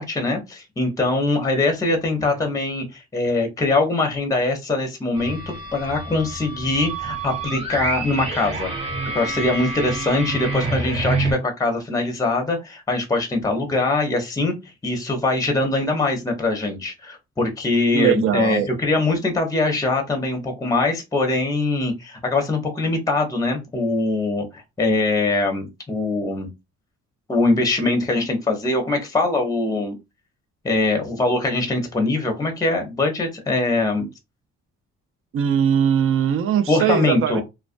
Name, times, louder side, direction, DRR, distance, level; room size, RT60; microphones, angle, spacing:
voice 1, 0.0-8.7 9.1-14.5 14.8-26.5 27.3-30.0 30.6-34.0 36.7-37.4, left 2 dB, 10° left, 0.6 m, -22 dB
sound 1, 5.2-11.3, right 3 dB, 20° right, 1.0 m, -28 dB
voice 2, 17.9-18.7 34.0-34.1 35.3-37.4, right 8 dB, 45° right, 0.5 m, -20 dB
2.3 x 2.2 x 2.5 m
cardioid pair, 90°, 30 cm